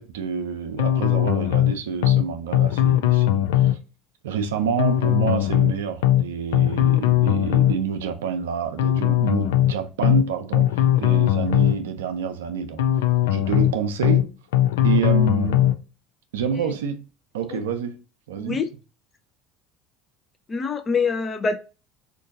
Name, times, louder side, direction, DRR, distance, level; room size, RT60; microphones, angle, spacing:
voice 1, 0.0-3.8 4.2-13.0 13.3-14.3 14.8-15.7 16.3-17.1 17.3-18.0 18.3-18.7, right 6 dB, 80° right, 0.5 m, -28 dB
sound 1, 0.8-1.7 2.0-2.2 2.5-3.8 4.8-5.7 6.0-6.2 6.5-7.8 8.8-9.7 10.0-10.2 10.5-11.8 12.8-13.7 14.0-14.2 14.5-15.8, left 13 dB, 80° left, 0.3 m, -19 dB
voice 2, 20.5-21.5, left 5 dB, 30° left, 0.6 m, -24 dB
3.7 x 2.6 x 2.5 m
hypercardioid pair, 75°, 0 cm